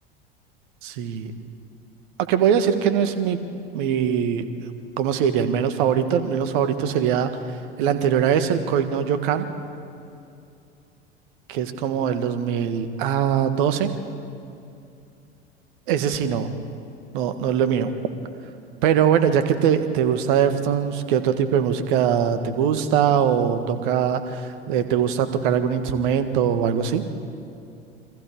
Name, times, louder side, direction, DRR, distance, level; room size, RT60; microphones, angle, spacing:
voice 1, 0.8-1.3 2.3-3.4 3.7-4.5 5.0-7.3 7.8-9.5 11.5-13.9 15.9-16.5 17.1-17.9 18.8-27.0, right 8 dB, 55° right, 9 dB, 1.8 m, -22 dB
28.5 x 24.0 x 4.9 m, 2.6 s
figure-of-eight pair, 80°, 31 cm